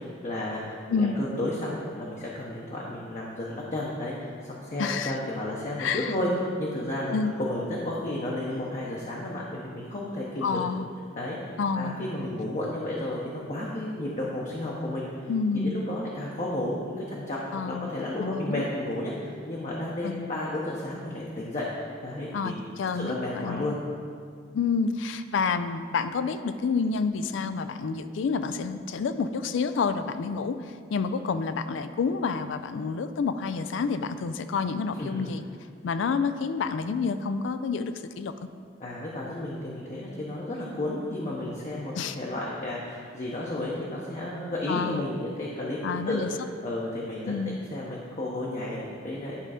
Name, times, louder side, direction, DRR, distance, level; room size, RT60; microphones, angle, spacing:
voice 1, 0.0-6.3 6.6-10.6 11.2-11.4 11.7-22.5 22.8-23.8 35.0-35.3 38.8-47.3 47.7-49.4, left 1 dB, 40° left, -4 dB, 0.8 m, -32 dB
voice 2, 4.8-5.2 5.8-6.1 7.1-7.3 10.4-10.9 11.6-12.0 15.3-15.8 17.5-17.9 18.2-18.6 20.0-20.3 22.3-23.8 24.5-35.4 35.8-38.3 41.9-42.2 44.7-45.1 45.8-46.3 47.3-47.6, left 5 dB, 70° left, 11 dB, 0.4 m, -29 dB
10.0 x 3.7 x 4.9 m, 2.1 s
head